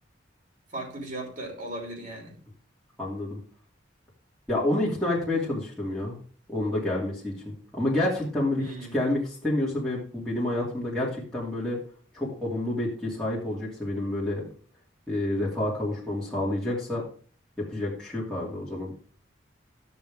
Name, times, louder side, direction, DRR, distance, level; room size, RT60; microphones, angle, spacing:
voice 1, 0.7-2.4 8.6-9.0, right 1 dB, 45° right, 0 dB, 3.4 m, -37 dB
voice 2, 3.0-3.4 4.5-6.2 6.5-11.8 12.1-14.5 15.1-17.0 17.6-19.0, left 1 dB, 5° left, -8 dB, 2.5 m, -29 dB
13.0 x 7.0 x 3.6 m, 0.43 s
head